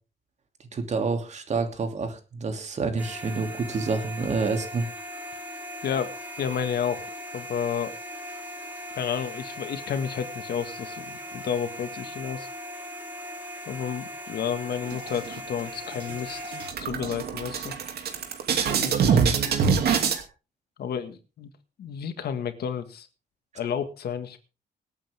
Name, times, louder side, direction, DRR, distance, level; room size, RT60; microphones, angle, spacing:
voice 1, 0.7-4.9 19.0-19.3, right 4 dB, 45° right, 5 dB, 2.8 m, -28 dB
sound 1, 3.0-16.7, equal, 10° right, 3.7 m, -39 dB
voice 2, 6.4-7.9 8.9-12.5 13.7-17.7 18.7-19.2 20.8-21.5 21.8-23.1 23.5-24.4, left 8 dB, 85° left, 9 dB, 1.9 m, -31 dB
sound 2, 14.9-15.6 16.0-16.1 16.4-20.2, right 6 dB, 85° right, 2.6 m, -25 dB
24.5 x 8.7 x 3.6 m, 0.33 s
wide cardioid pair, 140°, 16 cm